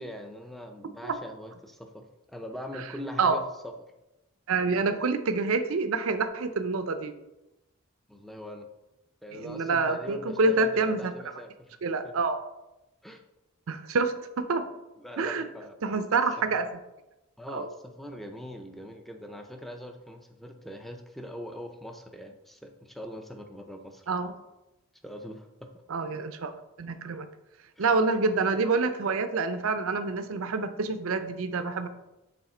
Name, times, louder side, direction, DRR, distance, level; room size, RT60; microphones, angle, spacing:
voice 1, 0.0-3.7 8.1-8.7 9.2-11.7 12.0-12.1 13.0-13.2 15.0-16.0 17.4-24.1 25.0-25.7 27.8-27.9, equal, ahead, 4 dB, 0.5 m, -42 dB
voice 2, 4.5-7.1 9.3-11.1 11.8-12.4 13.7-14.7 15.2-15.5 15.8-16.6 17.5-17.7 24.1-24.3 25.9-26.5 26.8-27.3 27.8-31.9, right 4 dB, 70° right, 10 dB, 0.5 m, -27 dB
7.1 x 3.6 x 4.3 m, 0.96 s
head